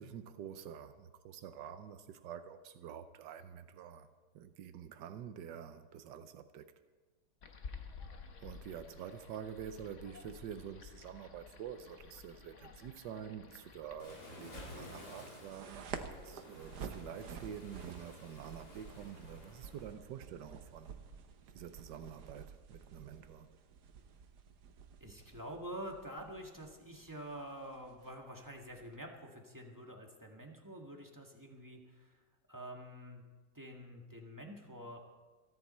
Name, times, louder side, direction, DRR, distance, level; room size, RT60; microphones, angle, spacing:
voice 1, 0.0-4.1 4.3-6.7 8.4-21.0 21.5-23.5, right 8 dB, 90° right, 1.4 m, -47 dB
sound 1, 7.4-14.0, left 5 dB, 50° left, 1.4 m, -52 dB
Waves surf, 14.0-19.9, left 1 dB, 65° left, 3.5 m, -53 dB
sound 2, 15.5-29.0, right 6 dB, 70° right, 1.5 m, -51 dB
voice 2, 25.0-32.1 32.5-33.2 33.5-35.0, equal, 10° right, 1.6 m, -47 dB
27.5 x 10.5 x 4.3 m
omnidirectional pair, 1.8 m